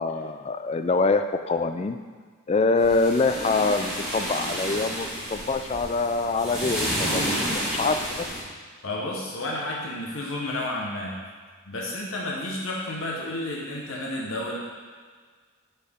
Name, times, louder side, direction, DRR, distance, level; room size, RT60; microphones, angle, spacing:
voice 1, 0.0-2.0 2.5-8.3, left 3 dB, 30° left, 8 dB, 0.3 m, -25 dB
sound 1, 2.8-8.4, equal, 5° right, 1.9 m, -30 dB
voice 2, 8.8-11.2 11.6-14.6, left 1 dB, 80° left, -2 dB, 1.1 m, -31 dB
8.0 x 5.6 x 3.6 m, 1.6 s
head